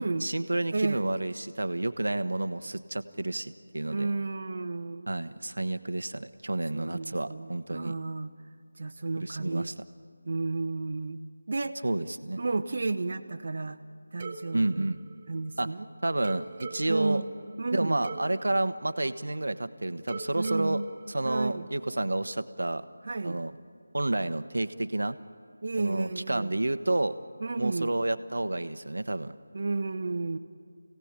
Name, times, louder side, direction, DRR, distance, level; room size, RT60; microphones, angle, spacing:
voice 1, 0.0-4.1 5.1-7.9 9.2-9.7 11.8-12.4 14.5-15.0 15.6-15.7 16.0-17.2 17.7-20.8 21.1-22.8 23.2-23.5 23.9-25.2 25.8-27.2 27.6-29.3, right 2 dB, 80° right, 11 dB, 1.0 m, -30 dB
voice 2, 0.7-1.0 3.9-5.1 6.7-8.3 8.8-9.7 10.2-11.2 11.5-11.8 12.4-13.8 14.1-15.0 15.3-15.9 16.9-17.3 17.6-18.0 20.3-20.9 21.2-21.7 23.1-23.4 25.6-26.5 27.4-27.9 29.5-30.4, right 3 dB, 50° right, 5 dB, 0.9 m, -32 dB
sound 1, 14.2-15.8 16.2-19.6 20.1-22.0, right 4 dB, 30° right, 1.3 m, -44 dB
28.0 x 17.5 x 8.8 m, 2.2 s
figure-of-eight pair, 165°, 0 cm